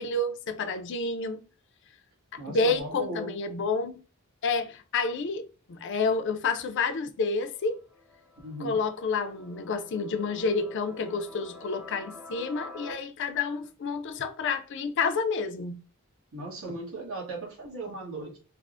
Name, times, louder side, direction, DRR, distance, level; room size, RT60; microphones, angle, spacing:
voice 1, 0.0-1.4 2.5-4.0 4.4-7.8 8.6-15.8, left 4 dB, 55° left, 0.4 m, -29 dB
voice 2, 2.4-3.3 8.4-8.8 16.3-18.4, right 2 dB, 70° right, 1.2 m, -37 dB
sound 1, 7.4-12.9, left 2 dB, 10° right, 0.7 m, -47 dB
3.3 x 2.0 x 2.4 m
head